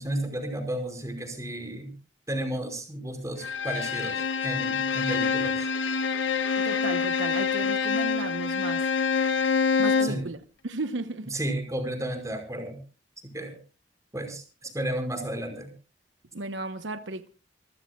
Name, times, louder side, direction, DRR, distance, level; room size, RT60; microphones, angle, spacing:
voice 1, 0.0-1.9 2.3-5.7 10.0-10.2 11.3-12.8 13.3-13.6 14.1-15.7, right 1 dB, 20° right, 5.4 m, -33 dB
Bowed string instrument, 3.4-10.3, left 5 dB, 80° left, 1.3 m, -26 dB
voice 2, 6.6-8.9 9.8-11.3 16.3-17.3, right 2 dB, 80° right, 1.0 m, -34 dB
27.0 x 15.0 x 2.4 m
head